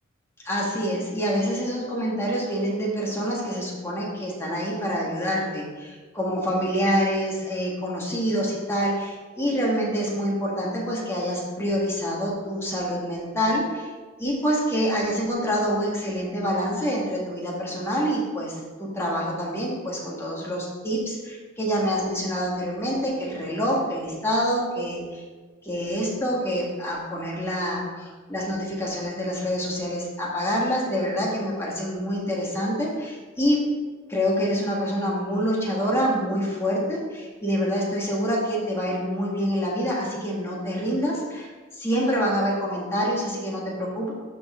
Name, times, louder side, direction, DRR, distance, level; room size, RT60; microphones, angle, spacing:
voice 1, 0.4-13.9 14.2-25.2 25.6-33.6 34.1-44.1, equal, 15° left, -4 dB, 1.8 m, -26 dB
12.5 x 4.4 x 3.8 m, 1.4 s
head